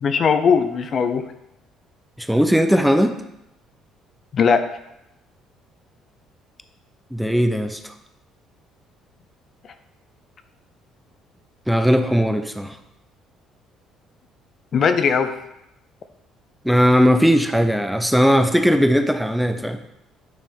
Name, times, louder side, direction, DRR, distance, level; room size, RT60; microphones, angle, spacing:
voice 1, 0.0-1.3 4.3-4.7 14.7-15.3, left 6 dB, 50° left, 9 dB, 0.6 m, -19 dB
voice 2, 2.2-3.1 7.1-7.9 11.7-12.8 16.6-19.8, equal, ahead, 8 dB, 0.7 m, -18 dB
9.2 x 3.4 x 5.5 m, 0.84 s
supercardioid pair, 80°, 0 cm